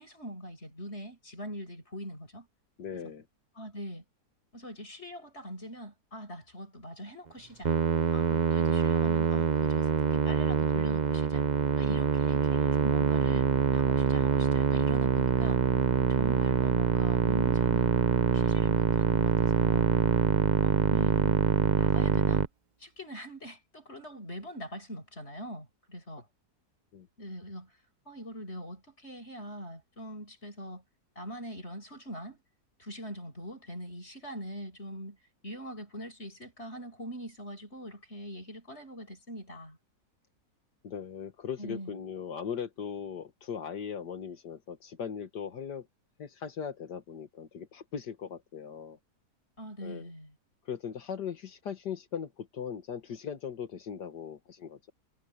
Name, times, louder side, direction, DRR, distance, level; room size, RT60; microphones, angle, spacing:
voice 1, 0.0-2.5 3.6-4.0 4.5-7.7 8.1-11.4 11.8-15.6 16.1-17.9 18.3-20.0 20.6-21.4 21.8-22.5 22.8-26.3 27.2-27.7 28.1-30.8 31.2-32.4 32.8-35.2 35.4-39.8 41.6-42.0 49.6-50.3, equal, 40° left, 7.7 m, -42 dB
voice 2, 2.8-3.3 26.9-27.1 40.8-45.9 46.2-49.0 49.8-50.1 50.7-54.9, left 7 dB, 85° left, 2.1 m, -39 dB
Musical instrument, 7.6-22.5, right 6 dB, 45° right, 0.6 m, -25 dB
omnidirectional pair, 1.7 m